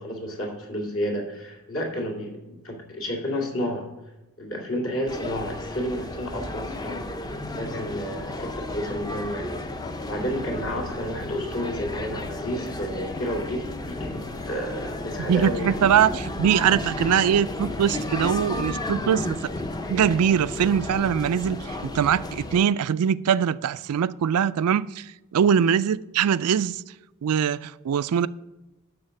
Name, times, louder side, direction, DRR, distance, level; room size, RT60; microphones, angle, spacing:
voice 1, 0.0-3.9 4.4-7.0 7.5-9.7 10.0-15.8, equal, 60° left, 2.3 m, -31 dB
sound 1, 5.1-22.7, left 2 dB, 20° left, 0.5 m, -33 dB
voice 2, 15.2-19.5 19.9-26.8 27.2-28.3, right 8 dB, 85° right, 0.4 m, -22 dB
12.0 x 4.1 x 6.9 m
head